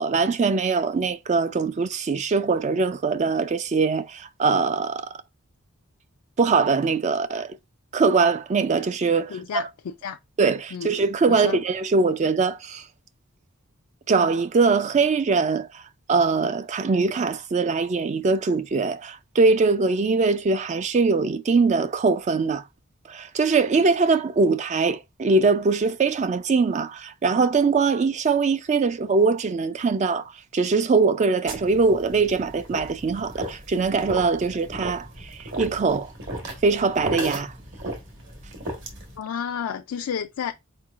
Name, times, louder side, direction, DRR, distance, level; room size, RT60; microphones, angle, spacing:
voice 1, 0.0-5.1 6.4-7.5 7.9-9.7 10.4-12.8 14.1-15.8 16.1-22.6 23.1-30.2 30.5-36.1 36.6-37.5, right 4 dB, 35° right, 0.3 m, -22 dB
voice 2, 9.3-9.7 10.0-10.2 10.7-10.9 11.3-11.6 39.2-40.5, left 7 dB, 80° left, 0.4 m, -30 dB
sound 1, 31.5-39.2, right 1 dB, 60° right, 1.5 m, -35 dB
4.4 x 4.4 x 2.4 m
head